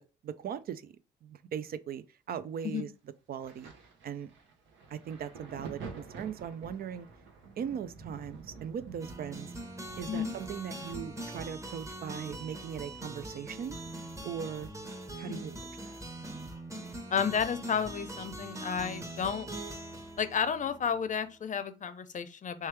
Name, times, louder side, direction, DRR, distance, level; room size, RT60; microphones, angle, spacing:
voice 1, 0.2-0.9 1.2-2.9 3.3-3.7 4.0-4.3 4.9-7.1 7.6-9.5 10.0-13.8 14.2-14.7 15.2-15.5 15.8-15.9, right 8 dB, 55° right, 0.4 m, -39 dB
Thunder, 3.4-16.8 17.0-18.4 19.2-19.4, right 5 dB, 75° right, 0.8 m, -50 dB
sound 1, 9.0-21.3, right 1 dB, 15° right, 1.0 m, -42 dB
voice 2, 17.1-19.5 20.2-22.7, left 7 dB, 40° left, 0.6 m, -32 dB
3.3 x 3.2 x 3.3 m
supercardioid pair, 60°, 19 cm